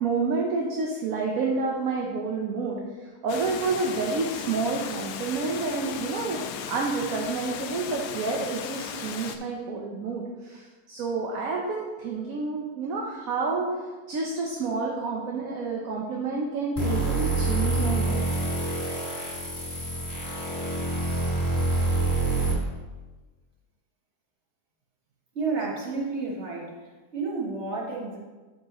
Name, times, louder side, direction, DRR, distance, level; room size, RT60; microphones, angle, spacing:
voice 1, 0.0-13.8 14.1-18.2, right 4 dB, 65° right, -1 dB, 1.2 m, -29 dB
Water, 3.3-9.4, left 8 dB, 80° left, 1.1 m, -36 dB
sound 1, 16.8-22.5, right 2 dB, 25° left, 2.8 m, -26 dB
voice 2, 25.3-26.7 27.1-28.2, right 4 dB, 45° right, -2 dB, 1.6 m, -30 dB
9.3 x 6.5 x 3.0 m, 1.3 s
omnidirectional pair, 1.8 m